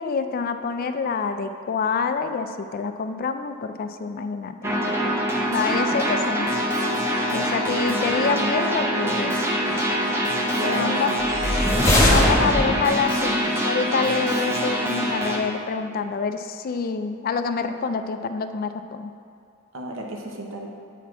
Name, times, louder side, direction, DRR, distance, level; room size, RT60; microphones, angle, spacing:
voice 1, 0.0-5.1 5.5-6.5 7.3-9.5 10.6-11.1 12.1-19.1, left 5 dB, 45° left, 8 dB, 0.3 m, -27 dB
sound 1, 4.6-15.4, equal, 15° right, 0.7 m, -24 dB
voice 2, 5.8-6.4 10.5-11.2 19.7-20.7, right 1 dB, 75° right, 1 dB, 0.9 m, -33 dB
sound 2, 11.2-13.0, left 1 dB, 15° left, 1.1 m, -20 dB
9.1 x 4.2 x 4.6 m, 2.3 s
head